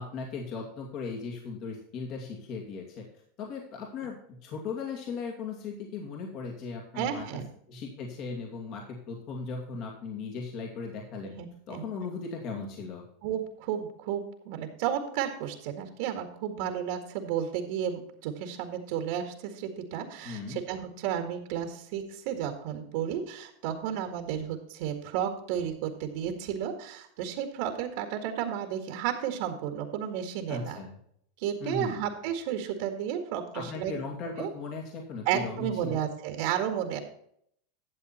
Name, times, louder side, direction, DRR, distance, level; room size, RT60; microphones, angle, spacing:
voice 1, 0.0-3.1 3.4-7.4 7.7-11.4 11.7-13.1 20.2-20.6 30.5-30.9 31.6-32.0 33.5-36.1, left 4 dB, 45° left, 1 dB, 2.2 m, -37 dB
voice 2, 7.0-7.5 11.3-11.9 13.2-30.8 31.4-33.9 34.4-34.5 35.3-37.0, right 9 dB, 60° right, 5 dB, 1.9 m, -32 dB
12.0 x 7.3 x 4.3 m, 0.67 s
supercardioid pair, 145°, 0 cm